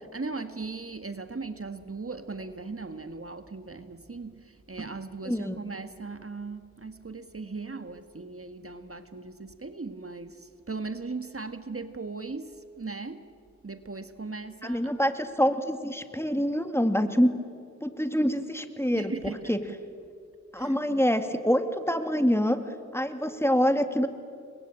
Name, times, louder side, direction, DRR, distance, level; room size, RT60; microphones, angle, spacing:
voice 1, 0.1-13.3 13.6-15.1 18.9-19.5 20.5-20.8, right 3 dB, 45° right, 9 dB, 1.5 m, -38 dB
voice 2, 5.3-5.6 14.6-17.4 17.8-19.1 19.5-19.6 20.5-22.6 22.9-24.1, equal, 10° left, 8 dB, 2.2 m, -25 dB
29.5 x 23.0 x 8.8 m, 2.3 s
wide cardioid pair, 45°, 30 cm